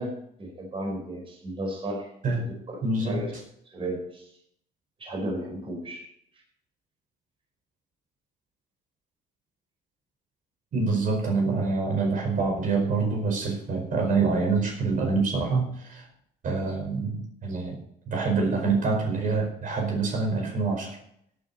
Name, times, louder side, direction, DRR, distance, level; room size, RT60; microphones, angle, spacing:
voice 1, 0.0-3.3 3.7-4.3 5.0-6.1, right 1 dB, 30° right, 1 dB, 4.7 m, -34 dB
voice 2, 2.2-2.5 2.8-3.3 10.7-16.1 16.4-21.0, right 4 dB, 50° right, 1 dB, 5.0 m, -26 dB
16.0 x 9.7 x 4.3 m, 0.72 s
cardioid pair, 110°, 17 cm